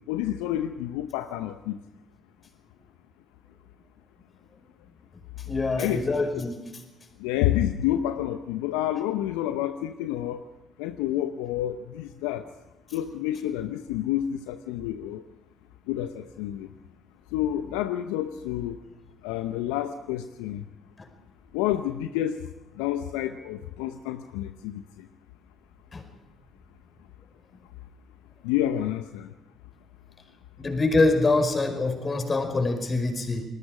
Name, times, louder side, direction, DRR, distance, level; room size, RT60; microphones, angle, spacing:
voice 1, 0.1-1.8 5.8-6.0 7.2-10.4 10.8-12.5 12.9-15.2 15.9-16.7 17.3-18.8 19.2-20.6 21.5-22.4 22.8-24.8 28.4-29.3, left 12 dB, 75° left, 9 dB, 0.7 m, -29 dB
voice 2, 5.5-6.5 21.0-21.1 25.9-26.0 30.6-33.5, left 3 dB, 35° left, 6 dB, 5.0 m, -24 dB
29.0 x 20.0 x 5.0 m, 1.0 s
hypercardioid pair, 50°, 0 cm